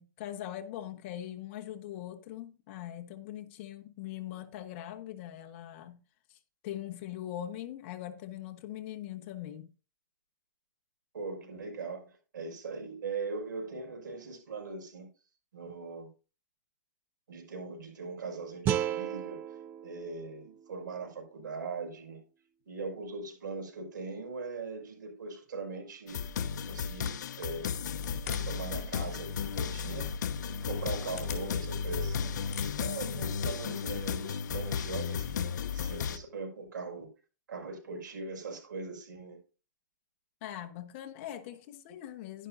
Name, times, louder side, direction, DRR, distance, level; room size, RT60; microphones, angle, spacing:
voice 1, 0.0-6.0 6.3-6.4 6.6-9.7 40.4-42.5, left 12 dB, 40° left, 1.2 m, -41 dB
voice 2, 11.1-15.1 15.5-16.1 17.3-19.4 19.8-22.2 22.7-26.2 26.7-27.7 28.2-30.1 30.6-32.3 32.8-37.1 37.5-39.4, right 4 dB, 80° right, 5.5 m, -40 dB
sound 1, 18.7-21.8, right 10 dB, 20° right, 0.4 m, -35 dB
sound 2, 26.1-36.2, left 6 dB, 70° left, 0.7 m, -34 dB
sound 3, 27.0-28.7 29.0-29.6 30.0-30.1 30.6-32.1 32.3-33.6, left 8 dB, 55° left, 3.8 m, -46 dB
11.5 x 10.5 x 2.6 m
hypercardioid pair, 160°, 10 cm